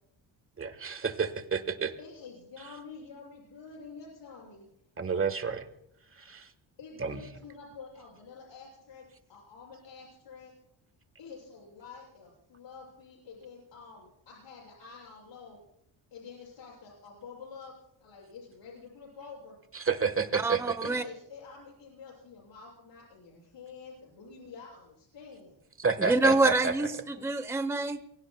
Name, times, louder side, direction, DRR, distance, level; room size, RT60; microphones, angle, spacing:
voice 1, 0.6-1.9 5.0-5.7 6.2-6.5 7.0-7.2 19.7-20.9 25.8-26.7, right 5 dB, 30° right, 10 dB, 1.3 m, -30 dB
voice 2, 2.0-4.7 6.8-10.5 11.2-15.6 16.1-19.6 20.8-25.6 26.0-26.3 27.1-27.2, left 5 dB, 65° left, -2 dB, 6.9 m, -48 dB
voice 3, 20.3-21.0 26.0-28.0, right 2 dB, 5° right, 10 dB, 0.7 m, -27 dB
28.5 x 23.0 x 2.2 m, 0.78 s
wide cardioid pair, 160°, 46 cm